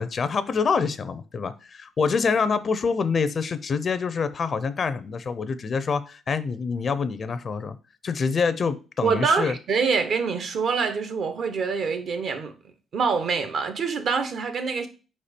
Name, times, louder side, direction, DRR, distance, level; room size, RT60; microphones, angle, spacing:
voice 1, 0.0-7.8 8.0-9.5, left 5 dB, 45° left, 0.6 m, -26 dB
voice 2, 9.0-12.5 12.9-14.9, right 5 dB, 60° right, 1.0 m, -25 dB
4.8 x 4.3 x 5.0 m
cardioid pair, 90°, 0 cm